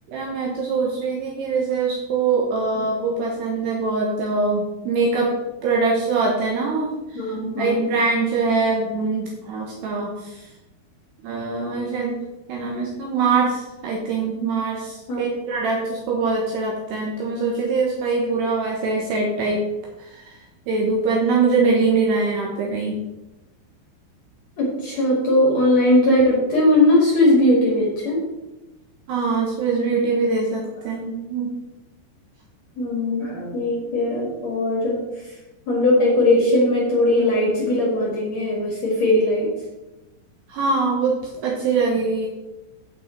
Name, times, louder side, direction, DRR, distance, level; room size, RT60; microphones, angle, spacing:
voice 1, 0.1-5.3 5.6-10.5 11.2-12.2 12.5-19.6 20.0-20.4 20.7-23.0 29.1-31.5 40.5-41.2 41.4-42.3, right 4 dB, 70° right, -2 dB, 3.0 m, -23 dB
voice 2, 7.1-7.9 15.1-15.2 24.6-28.2 32.8-35.1 35.7-39.5, left 1 dB, 50° left, -3 dB, 2.4 m, -19 dB
8.9 x 8.6 x 4.5 m, 1.0 s
omnidirectional pair, 5.4 m